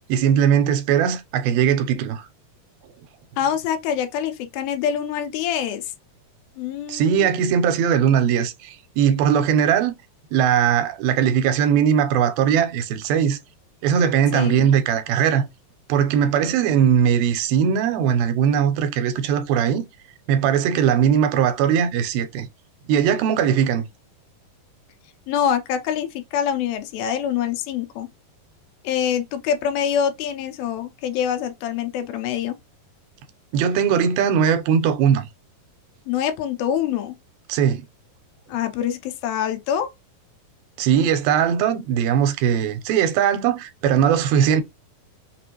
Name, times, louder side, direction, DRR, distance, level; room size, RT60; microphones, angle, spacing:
voice 1, 0.1-2.2 6.9-9.9 10.3-13.4 13.8-15.4 15.9-19.8 20.3-22.5 22.9-23.8 33.5-35.3 37.5-37.8 40.8-44.6, right 8 dB, 85° right, 2.6 m, -19 dB
voice 2, 3.4-5.9 6.6-7.3 14.3-14.7 25.3-28.1 28.8-32.6 36.1-37.2 38.5-39.9, left 9 dB, 85° left, 2.5 m, -25 dB
5.9 x 2.5 x 2.9 m
omnidirectional pair, 4.2 m